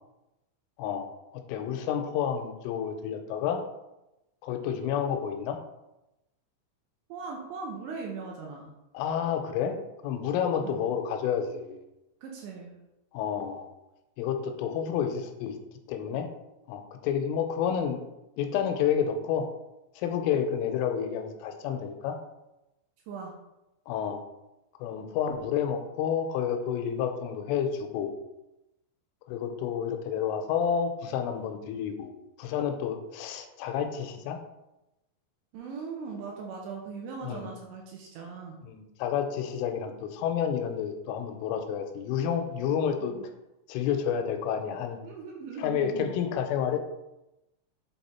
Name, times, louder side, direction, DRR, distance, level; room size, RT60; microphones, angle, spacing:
voice 1, 1.3-3.6 4.4-5.6 8.9-9.8 10.0-11.8 13.1-13.7 14.2-15.6 15.9-16.3 16.7-18.0 18.4-19.5 20.0-22.2 23.9-24.2 24.8-28.1 29.3-32.1 32.4-34.4 37.2-37.5 38.7-43.1 43.7-45.0 45.6-46.8, left 8 dB, 85° left, 6 dB, 3.1 m, -30 dB
voice 2, 7.1-8.7 10.6-10.9 12.2-12.8 23.1-23.3 35.5-38.6 43.0-43.3 45.0-46.1, right 5 dB, 80° right, 0 dB, 2.7 m, -39 dB
7.9 x 3.5 x 4.2 m, 0.93 s
omnidirectional pair, 5.7 m